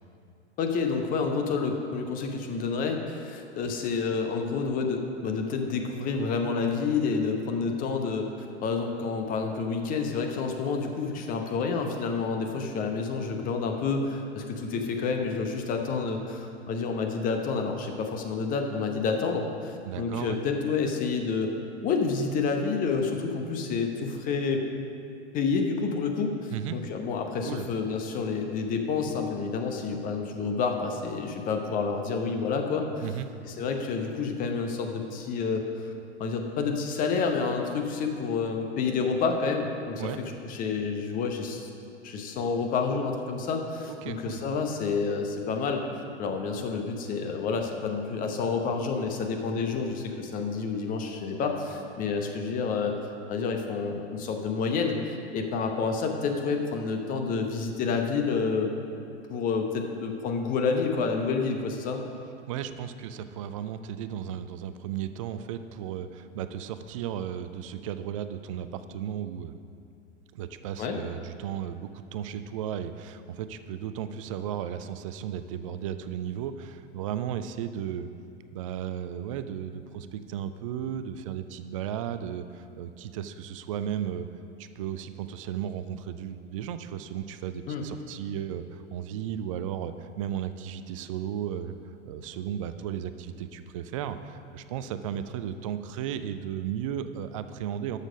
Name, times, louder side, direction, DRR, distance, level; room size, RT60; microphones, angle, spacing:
voice 1, 0.6-8.3 8.6-21.5 21.8-24.6 25.3-33.1 33.4-35.9 36.2-40.1 40.4-41.7 42.0-45.8 46.2-53.0 53.3-58.7 59.3-62.0 70.8-71.0 87.7-87.8, left 5 dB, 25° left, 4 dB, 0.9 m, -29 dB
voice 2, 19.9-20.4 26.5-26.8 27.4-27.6 33.0-33.3 40.0-40.2 43.9-44.4 62.5-69.6 70.3-78.1 78.5-84.3 84.6-91.7 92.0-98.0, right 9 dB, 30° right, 11 dB, 0.4 m, -35 dB
12.5 x 6.6 x 5.1 m, 2.6 s
figure-of-eight pair, 100°, 35 cm